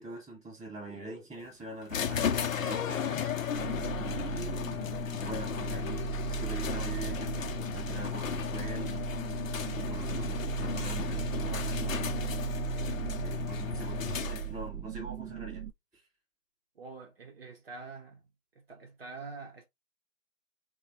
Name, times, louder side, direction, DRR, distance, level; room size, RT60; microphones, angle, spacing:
voice 1, 0.0-3.3 4.0-4.9 5.2-9.1 9.7-12.4 13.2-15.6, right 2 dB, ahead, 0.6 m, -43 dB
sound 1, 1.9-14.7, left 9 dB, 60° left, 0.5 m, -34 dB
sound 2, 3.5-15.7, right 11 dB, 75° right, 0.7 m, -37 dB
voice 2, 16.8-18.2 18.6-19.7, right 4 dB, 40° right, 0.7 m, -45 dB
3.3 x 2.1 x 2.8 m
figure-of-eight pair, 150°, 45 cm